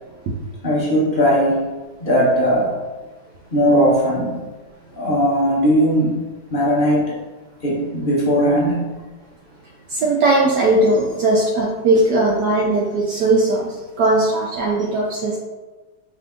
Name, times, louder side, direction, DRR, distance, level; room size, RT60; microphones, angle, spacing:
voice 1, 0.6-1.6 2.0-2.7 3.5-4.4 5.0-6.1 6.5-7.2 7.6-8.9, equal, 35° left, -5 dB, 1.0 m, -18 dB
voice 2, 9.9-15.4, right 2 dB, 75° right, -3 dB, 1.2 m, -18 dB
5.1 x 2.6 x 3.5 m, 1.2 s
omnidirectional pair, 1.9 m